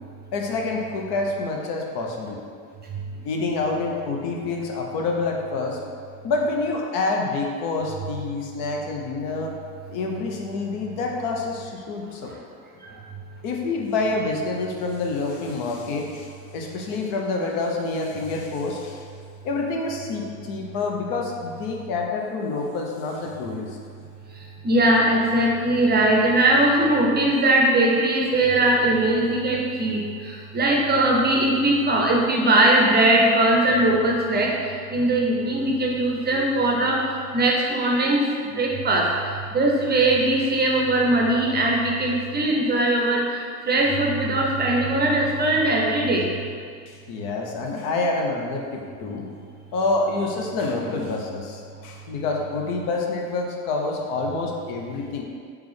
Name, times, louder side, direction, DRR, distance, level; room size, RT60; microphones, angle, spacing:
voice 1, 0.3-2.4 3.2-5.8 6.2-9.6 9.9-12.3 13.4-19.0 19.4-23.7 46.9-49.3 49.7-55.2, left 3 dB, 60° left, 0 dB, 0.7 m, -27 dB
voice 2, 24.6-34.5 34.9-37.0 37.3-39.1 39.5-43.2 43.6-46.3, right 1 dB, 25° right, -1 dB, 0.6 m, -20 dB
3.4 x 3.1 x 3.3 m, 2.1 s
hypercardioid pair, 75°, 42 cm